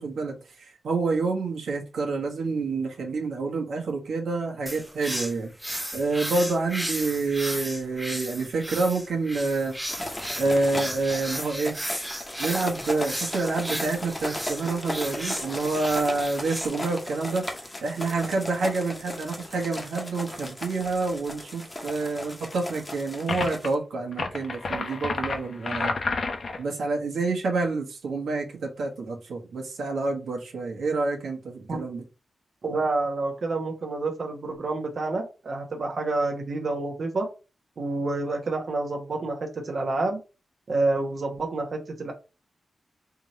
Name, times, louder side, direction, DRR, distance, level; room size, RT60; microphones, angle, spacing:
voice 1, 0.0-5.5 5.9-9.7 10.4-11.7 12.4-17.4 17.8-26.0 26.6-32.0, right 3 dB, 90° right, 1 dB, 1.3 m, -28 dB
sound 1, 4.7-16.7, equal, 5° right, 0.8 m, -35 dB
sound 2, 9.9-23.7, left 1 dB, 15° left, 1.0 m, -36 dB
sound 3, 23.3-23.7 24.1-26.6, left 3 dB, 55° left, 0.8 m, -30 dB
voice 2, 32.6-37.3 37.8-40.2 40.7-42.1, right 2 dB, 55° right, 2 dB, 1.1 m, -28 dB
3.6 x 3.0 x 4.3 m, 0.30 s
wide cardioid pair, 115°, 0 cm